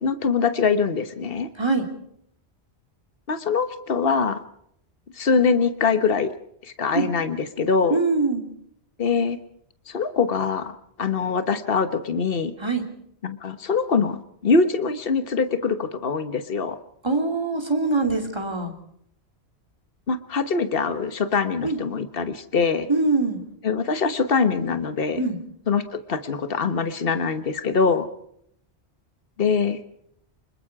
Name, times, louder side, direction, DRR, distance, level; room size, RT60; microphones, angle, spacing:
voice 1, 0.0-1.5 3.3-4.4 5.1-6.3 6.6-8.0 9.0-9.4 9.9-10.7 11.0-12.5 13.2-16.8 20.1-22.9 23.6-25.2 25.7-28.1 29.4-29.8, left 5 dB, 60° left, 10 dB, 1.5 m, -23 dB
voice 2, 7.9-8.4 12.6-12.9 17.0-18.7 21.6-21.8 22.9-23.4 25.2-25.4, right 3 dB, 25° right, 3 dB, 3.0 m, -23 dB
25.5 x 21.5 x 4.8 m, 0.70 s
omnidirectional pair, 1.1 m